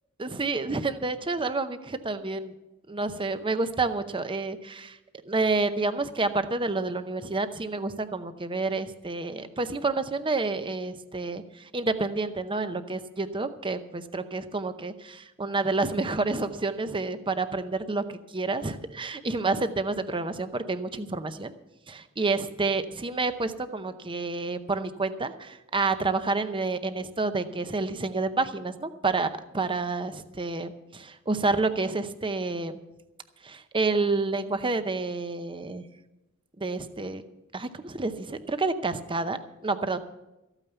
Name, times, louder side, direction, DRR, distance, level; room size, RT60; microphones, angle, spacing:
voice 1, 0.2-2.5 2.9-5.0 5.3-21.5 21.9-32.7 33.4-35.8 36.6-37.2 37.5-39.4 39.6-40.0, right 3 dB, 20° right, 10 dB, 0.7 m, -29 dB
14.0 x 9.0 x 6.9 m, 0.97 s
head